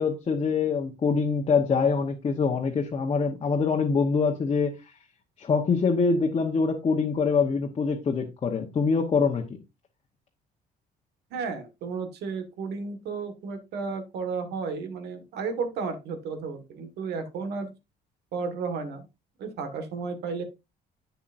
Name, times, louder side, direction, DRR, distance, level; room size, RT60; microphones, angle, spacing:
voice 1, 0.0-4.9 5.4-9.4, left 5 dB, 35° left, 1.1 m, -24 dB
voice 2, 11.3-17.7 18.3-19.0 19.4-20.4, right 5 dB, 75° right, 1.7 m, -33 dB
8.4 x 7.3 x 2.6 m
cardioid pair, 110°, 17 cm